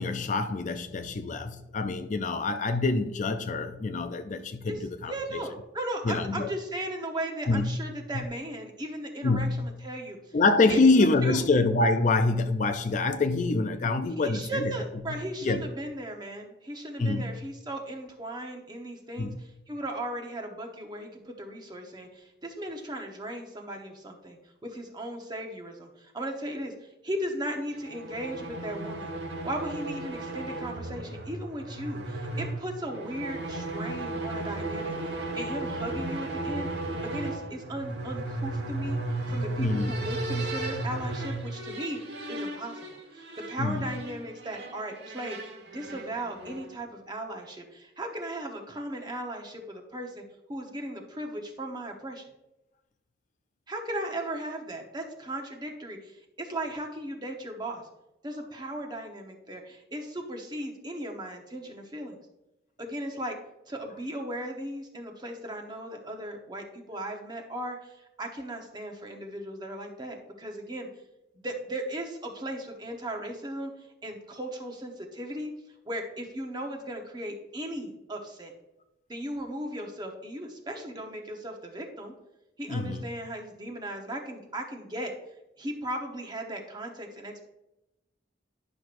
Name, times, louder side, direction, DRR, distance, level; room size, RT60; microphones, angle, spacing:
voice 1, 0.0-5.1 6.1-6.5 7.5-7.8 8.1-8.2 9.2-9.6 10.3-14.7 15.4-15.6 17.0-17.3 19.2-19.4 39.6-39.9 43.6-43.8 82.7-83.0, left 3 dB, 40° left, 8 dB, 0.4 m, -25 dB
voice 2, 4.6-10.4 10.7-11.5 14.2-29.1 29.4-36.7 37.0-42.0 42.3-45.4 45.7-50.2 50.5-52.2 53.7-57.8 58.2-62.2 62.8-63.4 63.7-70.9 71.3-73.7 74.0-75.5 75.8-78.5 79.1-82.1 82.6-85.1 85.6-87.4, right 1 dB, 20° right, 2 dB, 0.9 m, -37 dB
sound 1, 27.7-46.8, right 2 dB, 60° right, 1.3 m, -35 dB
11.0 x 6.1 x 2.5 m, 0.93 s
head